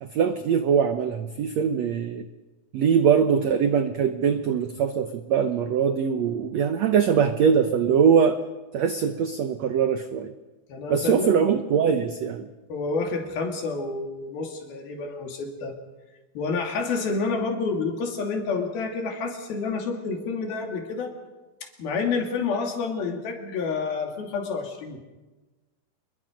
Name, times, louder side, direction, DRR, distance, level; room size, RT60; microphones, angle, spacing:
voice 1, 0.0-2.3 2.7-8.4 8.7-10.3 10.9-12.5, right 7 dB, 75° right, 8 dB, 1.5 m, -22 dB
voice 2, 10.7-11.4 12.7-15.8 16.4-21.1 21.8-25.0, left 4 dB, 70° left, 2 dB, 4.5 m, -29 dB
26.0 x 22.0 x 5.2 m, 1.2 s
omnidirectional pair, 4.4 m